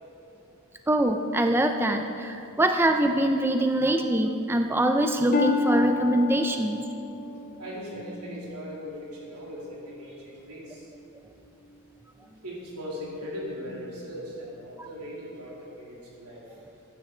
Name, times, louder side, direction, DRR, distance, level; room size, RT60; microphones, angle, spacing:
voice 1, 0.9-6.8 14.8-14.9, right 1 dB, 10° right, 5 dB, 0.4 m, -24 dB
Harp, 5.3-9.1 9.6-10.0 10.7-10.8, left 3 dB, 35° left, 0.7 m, -30 dB
voice 2, 7.6-10.9 12.4-16.6, equal, 85° right, -5 dB, 3.1 m, -39 dB
15.0 x 9.5 x 3.9 m, 2.7 s
head